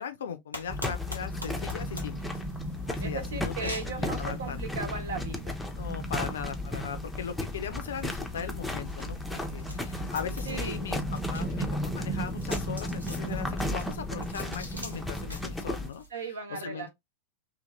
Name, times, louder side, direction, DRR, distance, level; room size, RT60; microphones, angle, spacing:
voice 1, 0.0-2.4 2.9-3.7 4.0-4.6 5.8-11.0 11.3-16.0 16.5-16.9, left 7 dB, 65° left, 0.5 m, -38 dB
sound 1, 0.5-16.1, equal, 90° right, 0.9 m, -47 dB
sound 2, 0.7-15.9, left 1 dB, 5° left, 0.5 m, -34 dB
voice 2, 3.0-5.5 10.4-10.8 16.1-16.9, right 4 dB, 65° right, 0.9 m, -37 dB
2.8 x 2.7 x 2.4 m
figure-of-eight pair, 90°, 0 cm